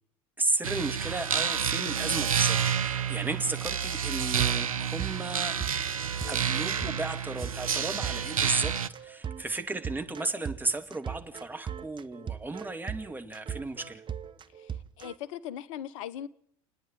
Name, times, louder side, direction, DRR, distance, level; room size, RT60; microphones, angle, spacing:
voice 1, 0.4-5.5 6.3-14.0, right 2 dB, 10° right, 2.7 m, -34 dB
sound 1, 0.6-8.9, right 8 dB, 85° right, 0.9 m, -29 dB
sound 2, 4.4-15.2, right 8 dB, 30° right, 1.1 m, -39 dB
voice 2, 14.6-16.3, left 10 dB, 65° left, 1.1 m, -39 dB
29.5 x 10.0 x 9.1 m
hypercardioid pair, 80°, 17 cm